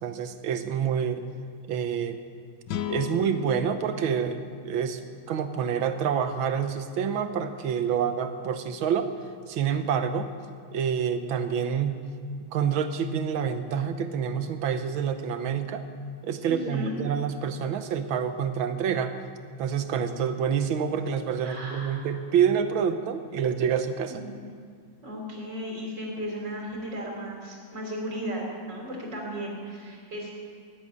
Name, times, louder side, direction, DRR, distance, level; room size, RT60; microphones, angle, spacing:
voice 1, 0.0-1.2 1.7-2.2 2.9-4.4 4.6-5.0 5.3-9.1 9.5-10.3 10.7-12.0 12.5-15.8 16.2-19.2 19.6-24.2, right 7 dB, 80° right, 9 dB, 1.7 m, -27 dB
sound 1, 2.7-6.0, left 9 dB, 70° left, 1.4 m, -37 dB
voice 2, 16.5-17.0 21.4-22.1 24.1-24.4 25.0-30.4, equal, 60° right, -1 dB, 4.1 m, -35 dB
17.5 x 8.1 x 9.8 m, 2.1 s
omnidirectional pair, 2.2 m